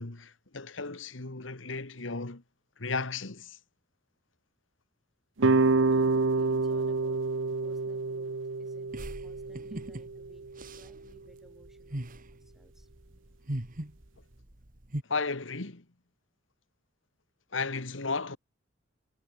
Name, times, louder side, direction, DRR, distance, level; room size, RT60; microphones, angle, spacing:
voice 1, 0.0-2.4 2.8-3.6 15.1-15.8 17.5-18.4, left 4 dB, 80° left, 1.8 m, -34 dB
sound 1, 5.4-10.5, right 3 dB, 80° right, 0.9 m, -28 dB
voice 2, 5.5-10.5 10.7-12.9, equal, ahead, 5.9 m, -57 dB
sound 2, 8.9-15.0, right 1 dB, 45° right, 2.1 m, -40 dB
head